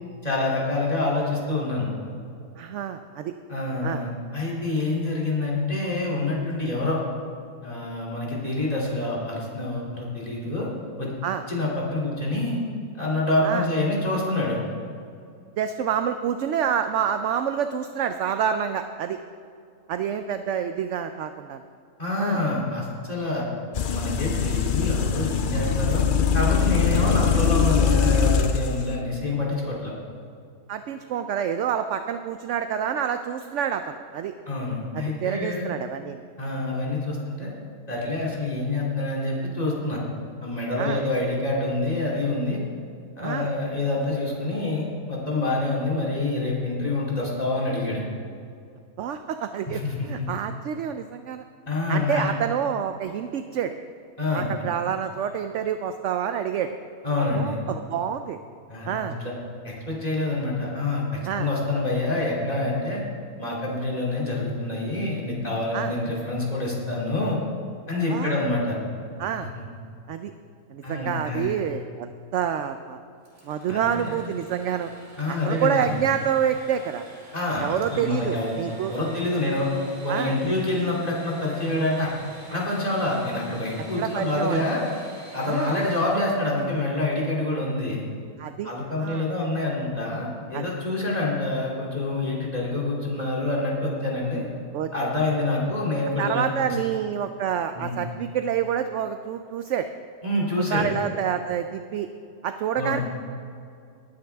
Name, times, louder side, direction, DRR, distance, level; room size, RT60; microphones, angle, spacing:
voice 1, 0.2-1.9 3.5-7.0 7.6-10.7 11.0-11.1 11.5-12.6 12.9-14.6 22.0-23.4 23.8-26.0 26.3-29.9 34.5-35.7 36.4-37.5 37.9-40.0 40.4-42.6 43.2-48.0 49.7-50.1 51.7-52.3 54.2-54.5 57.0-57.6 58.7-59.3 59.6-63.0 63.4-67.4 67.9-68.8 70.8-71.5 73.7-74.1 75.2-76.0 77.3-78.6 78.9-79.7 80.0-82.1 82.5-84.8 85.3-88.0 88.6-94.5 94.9-96.8 97.7-98.0 100.2-100.9 102.8-103.0, left 2 dB, 25° left, -5 dB, 3.0 m, -26 dB
voice 2, 2.6-3.3 3.8-4.0 11.2-11.4 13.4-13.7 15.6-19.2 19.9-21.6 22.2-22.4 30.7-34.3 34.9-36.2 40.8-41.0 43.2-43.5 49.0-51.4 51.9-53.8 54.3-56.8 57.2-58.4 58.9-59.2 61.2-61.5 65.7-65.9 68.1-68.4 69.2-69.5 70.1-70.3 70.7-73.0 73.4-74.9 75.3-77.1 77.6-78.9 80.1-80.4 84.0-84.6 85.5-85.7 88.4-88.7 89.0-89.3 90.5-90.7 94.7-94.9 96.2-99.9 100.7-102.1 102.4-103.0, right 8 dB, 65° right, 8 dB, 0.8 m, -28 dB
sound 1, 23.7-28.8, left 7 dB, 65° left, 0.5 m, -22 dB
Engine / Sawing, 73.2-86.9, right 1 dB, 45° right, 3.2 m, -47 dB
19.5 x 9.6 x 3.5 m, 2.4 s
omnidirectional pair, 1.5 m